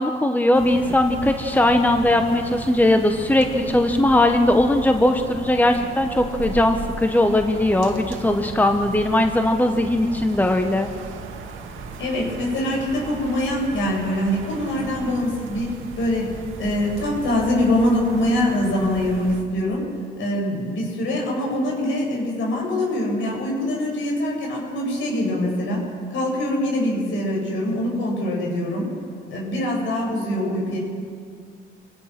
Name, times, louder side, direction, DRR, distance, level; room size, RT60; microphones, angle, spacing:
voice 1, 0.0-10.9, left 1 dB, 10° left, 5 dB, 1.5 m, -19 dB
sound 1, 0.5-19.4, right 4 dB, 85° right, 2.2 m, -36 dB
voice 2, 12.0-16.3 16.6-19.8 20.2-25.8 26.1-28.9 29.3-30.8, left 1 dB, 75° left, -2 dB, 7.5 m, -24 dB
26.0 x 17.5 x 6.2 m, 2.2 s
cardioid pair, 90°, 20 cm